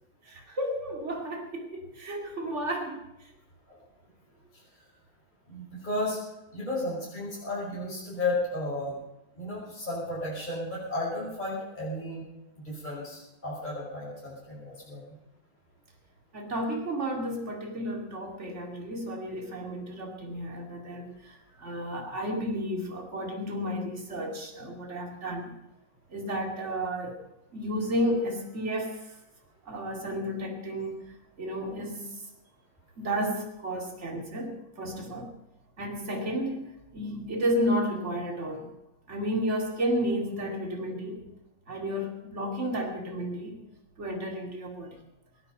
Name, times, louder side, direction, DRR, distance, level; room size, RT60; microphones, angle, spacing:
voice 1, 0.2-3.1 16.3-25.5 26.1-27.2 27.5-29.1 29.6-31.1 31.4-32.2 33.0-35.3 35.8-38.7 39.1-41.2 41.7-43.6 44.0-45.0, equal, 35° right, 1 dB, 2.8 m, -32 dB
voice 2, 4.5-4.8 5.5-6.2 6.5-9.0 9.4-12.3 12.6-15.2, left 2 dB, 20° left, -6 dB, 5.5 m, -33 dB
23.0 x 9.8 x 5.4 m, 0.92 s
omnidirectional pair, 2.3 m